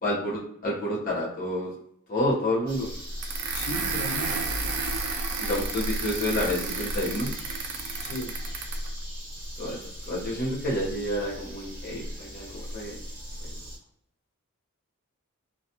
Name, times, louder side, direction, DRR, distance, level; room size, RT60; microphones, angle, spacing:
voice 1, 0.0-1.7 2.1-2.9 5.4-7.3 9.6-9.8 10.1-13.0, left 1 dB, 40° left, -5 dB, 0.9 m, -29 dB
sound 1, 2.7-13.8, equal, 40° right, 0.9 m, -37 dB
sound 2, 3.2-8.9, right 4 dB, 80° right, 0.4 m, -32 dB
voice 2, 3.5-4.4 8.0-8.3, left 1 dB, 70° left, 2 dB, 0.6 m, -35 dB
2.3 x 2.2 x 2.8 m, 0.71 s
head